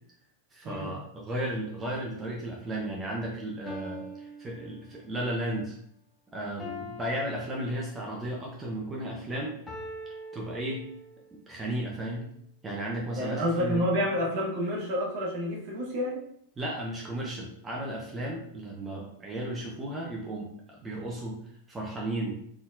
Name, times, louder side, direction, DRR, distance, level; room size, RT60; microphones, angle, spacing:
voice 1, 0.5-5.8 6.3-9.6 10.3-10.9 11.5-12.3 12.6-13.9 16.6-21.4 21.7-22.3, right 1 dB, 15° right, -3 dB, 0.8 m, -34 dB
sound 1, 3.7-5.3 6.6-8.2 9.7-11.3, equal, 15° left, 0.8 m, -43 dB
voice 2, 13.2-16.2, equal, 50° right, -3 dB, 1.2 m, -29 dB
3.9 x 3.7 x 2.5 m, 0.67 s
figure-of-eight pair, 90°, 0 cm